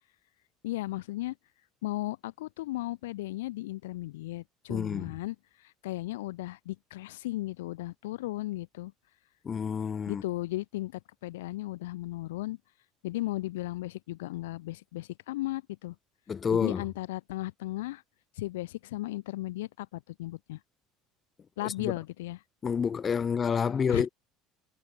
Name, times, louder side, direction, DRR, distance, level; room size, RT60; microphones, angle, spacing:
voice 1, 0.6-1.4 1.8-8.9 10.1-12.6 13.0-16.0 16.5-18.0 18.4-20.6 21.6-22.4 23.9-24.1, left 17 dB, 85° left, 5.4 m, -36 dB
voice 2, 4.7-5.0 9.5-10.2 16.3-16.8 21.6-21.9 22.6-24.1, left 6 dB, 35° left, 3.5 m, -28 dB
hypercardioid pair, 80°, 0 cm